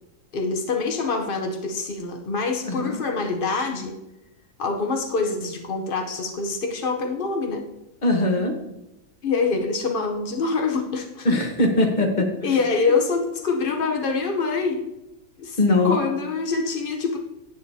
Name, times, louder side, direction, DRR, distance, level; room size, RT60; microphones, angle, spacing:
voice 1, 0.3-4.0 4.6-7.6 9.2-11.3 12.2-14.9 15.4-15.6 15.8-17.2, left 4 dB, 90° left, 3 dB, 0.4 m, -25 dB
voice 2, 2.6-3.0 8.0-8.6 11.2-12.7 15.6-16.0, left 2 dB, 30° left, 3 dB, 0.9 m, -21 dB
10.5 x 9.2 x 2.7 m, 0.94 s
omnidirectional pair, 2.1 m